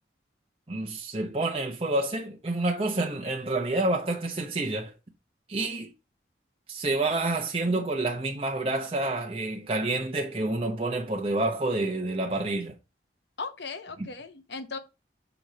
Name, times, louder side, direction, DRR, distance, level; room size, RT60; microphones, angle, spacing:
voice 1, 0.7-4.9 5.5-5.9 6.7-12.8 14.0-14.1, right 2 dB, 30° right, 0.7 m, -28 dB
voice 2, 13.4-14.8, left 4 dB, 70° left, 0.9 m, -37 dB
6.0 x 4.9 x 3.9 m
head